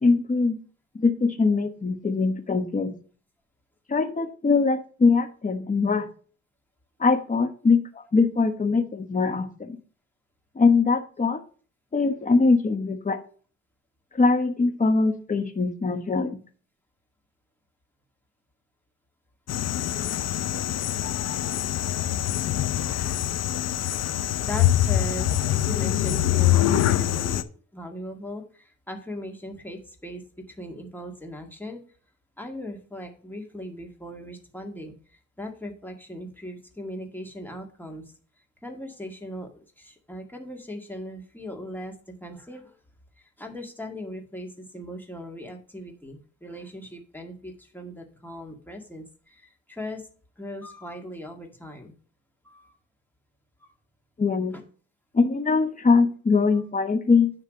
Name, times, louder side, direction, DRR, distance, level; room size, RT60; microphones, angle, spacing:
voice 1, 0.0-0.6 0.9-2.9 3.9-6.1 7.0-9.8 10.5-11.4 11.9-13.2 14.2-16.4 54.2-54.5 55.1-57.3, left 4 dB, 25° left, 7 dB, 1.2 m, -22 dB
sound 1, 19.5-27.4, left 12 dB, 55° left, 0.6 m, -24 dB
voice 2, 24.5-27.4 27.7-31.8 32.4-38.1 38.6-42.8 43.2-50.1 50.4-51.9 52.4-52.8 53.6-53.7 54.5-54.6 56.5-56.6, equal, 5° left, 2 dB, 1.9 m, -39 dB
9.6 x 3.3 x 6.4 m, 0.41 s
cardioid pair, 90°, 30 cm